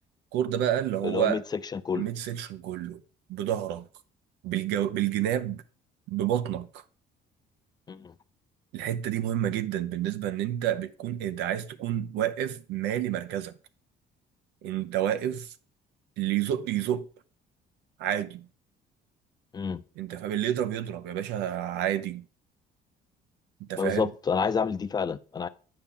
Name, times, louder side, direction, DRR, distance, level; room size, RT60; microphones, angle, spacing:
voice 1, 0.3-1.4 1.9-3.0 3.3-3.8 4.4-5.6 6.1-6.8 8.7-13.5 14.6-15.5 16.2-17.1 18.0-18.5 20.0-22.2 23.7-24.1, right 11 dB, 90° right, 0.7 m, -29 dB
voice 2, 1.0-2.1 7.9-8.1 19.5-19.8 23.8-25.5, left 6 dB, 25° left, 0.5 m, -29 dB
8.7 x 5.7 x 3.7 m
cardioid pair, 110°, 17 cm